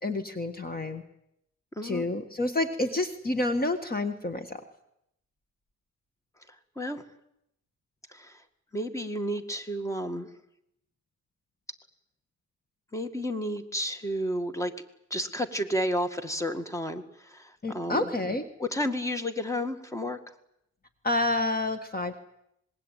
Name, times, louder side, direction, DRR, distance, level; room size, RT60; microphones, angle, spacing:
voice 1, 0.0-1.0 1.8-4.6 17.6-18.4 21.0-22.2, left 2 dB, 30° left, 9 dB, 1.7 m, -29 dB
voice 2, 6.5-7.0 8.1-8.4 8.7-10.3 12.9-14.7 15.1-18.1 18.6-20.2, equal, 10° left, 9 dB, 2.0 m, -31 dB
26.0 x 21.5 x 9.2 m, 0.80 s
wide cardioid pair, 125°, 30 cm